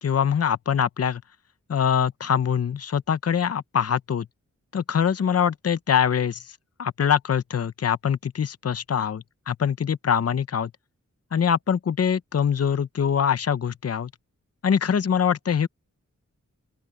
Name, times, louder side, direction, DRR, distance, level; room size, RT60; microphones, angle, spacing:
voice 1, 0.0-1.2 1.7-4.3 4.7-6.4 6.8-10.7 11.3-14.1 14.6-15.7, left 8 dB, 55° left, 0.8 m, -23 dB
open air
wide cardioid pair, 115°, 30 cm